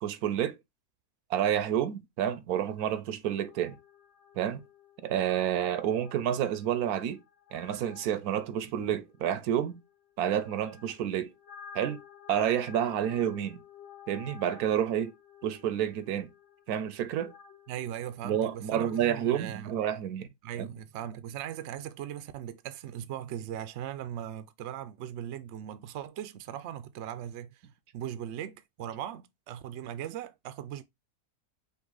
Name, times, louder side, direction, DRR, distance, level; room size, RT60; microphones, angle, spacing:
voice 1, 0.0-0.6 1.3-3.8 4.4-4.6 5.0-7.2 7.5-9.8 10.2-11.3 11.7-12.0 12.3-13.6 14.1-15.1 15.4-16.3 16.7-17.3 18.2-20.3 20.6-20.7, right 10 dB, 80° right, 1.1 m, -29 dB
sound 1, 3.3-19.3, left 8 dB, 65° left, 1.9 m, -53 dB
voice 2, 17.7-19.7 20.4-27.6 27.9-30.8, right 10 dB, 65° right, 0.7 m, -39 dB
5.5 x 2.5 x 3.8 m
omnidirectional pair, 1.6 m